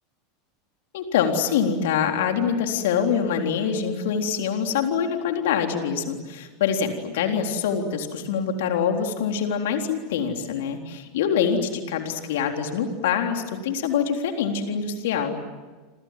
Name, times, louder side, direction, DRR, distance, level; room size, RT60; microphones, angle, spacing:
voice 1, 0.9-15.4, left 7 dB, 65° left, 4 dB, 3.8 m, -25 dB
29.5 x 26.0 x 7.6 m, 1.3 s
figure-of-eight pair, 80°, 0 cm